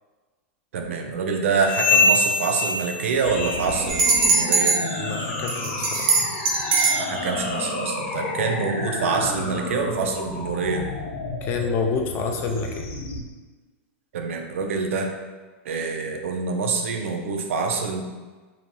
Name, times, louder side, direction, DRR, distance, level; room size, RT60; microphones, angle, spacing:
voice 1, 0.7-4.8 7.0-10.9 14.1-15.1 15.7-18.0, right 4 dB, 85° right, 3 dB, 0.4 m, -26 dB
sound 1, 1.6-3.9 4.1-4.5 5.0-5.2 5.8-6.0 6.6-6.7 7.5-7.6, left 3 dB, 10° left, 0.7 m, -24 dB
sound 2, 3.2-13.2, left 2 dB, 85° left, 1.2 m, -31 dB
sound 3, 3.9-4.8 5.5-7.0, right 4 dB, 50° right, 0.7 m, -20 dB
voice 2, 5.0-6.0 11.4-12.9, left 5 dB, 35° left, 3 dB, 0.4 m, -28 dB
3.0 x 2.6 x 2.2 m, 1.3 s
supercardioid pair, 140°, 7 cm